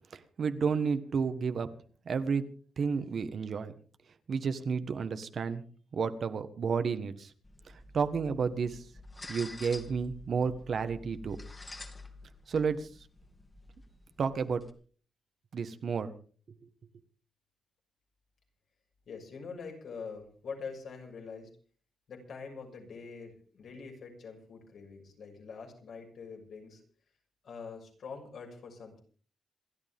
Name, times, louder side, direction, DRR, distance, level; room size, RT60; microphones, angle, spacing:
voice 1, 0.1-1.7 2.0-2.4 2.8-3.7 4.3-5.6 5.9-7.3 7.7-8.8 9.3-11.4 12.5-12.9 14.2-14.6 15.5-16.1, right 5 dB, 55° right, 10 dB, 1.5 m, -31 dB
sound 1, 7.4-14.7, left 2 dB, 20° left, 2.5 m, -49 dB
voice 2, 19.1-21.5 22.1-26.9 27.4-29.0, left 5 dB, 70° left, 1 dB, 6.4 m, -44 dB
27.5 x 12.0 x 3.7 m, 0.42 s
wide cardioid pair, 120°, 0 cm